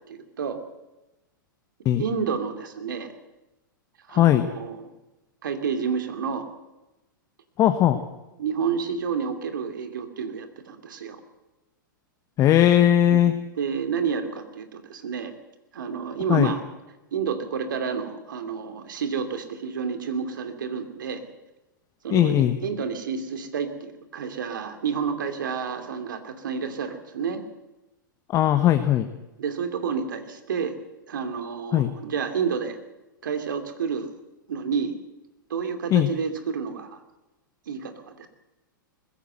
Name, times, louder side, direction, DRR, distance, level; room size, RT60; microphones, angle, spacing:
voice 1, 0.1-0.6 2.0-3.1 4.1-4.9 5.4-6.5 8.4-11.2 13.1-13.3 13.6-15.3 15.7-16.6 17.1-21.2 22.0-27.4 29.4-30.8 31.1-32.8 33.2-34.1 34.5-35.0 35.5-37.0 37.7-38.3, right 6 dB, 65° right, 7 dB, 2.7 m, -30 dB
voice 2, 4.1-4.5 7.6-8.0 12.4-13.3 16.3-16.5 22.1-22.6 28.3-29.1 31.7-31.9 35.9-36.1, left 12 dB, 30° left, 9 dB, 1.2 m, -19 dB
21.0 x 16.0 x 7.8 m, 1.0 s
figure-of-eight pair, 105°, 11 cm